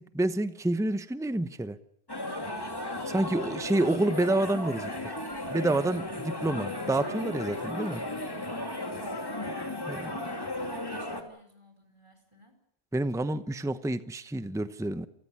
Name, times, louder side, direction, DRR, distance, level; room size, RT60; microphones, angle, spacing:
voice 1, 0.0-1.8 3.1-4.9 5.5-8.0 9.9-10.1 12.9-15.1, right 2 dB, 5° right, 12 dB, 0.8 m, -28 dB
sound 1, 2.1-11.2, left 1 dB, 20° left, 2.7 m, -35 dB
voice 2, 9.1-12.6, right 2 dB, 25° right, 4 dB, 4.7 m, -51 dB
28.5 x 15.0 x 9.8 m, 0.73 s
omnidirectional pair, 1.1 m